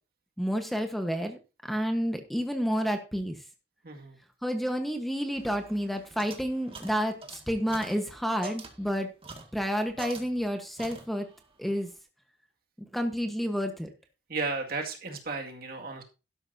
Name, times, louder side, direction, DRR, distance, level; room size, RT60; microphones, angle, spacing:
voice 1, 0.4-1.4 1.7-3.3 4.4-9.1 9.5-11.3 11.6-11.9 12.9-13.9, equal, ahead, 5 dB, 1.2 m, -30 dB
voice 2, 3.8-4.2 14.3-16.0, right 3 dB, 55° right, 2 dB, 2.1 m, -34 dB
sound 1, 5.4-10.5 10.8-11.5, right 3 dB, 35° right, 2.0 m, -46 dB
12.5 x 11.0 x 2.7 m, 0.30 s
head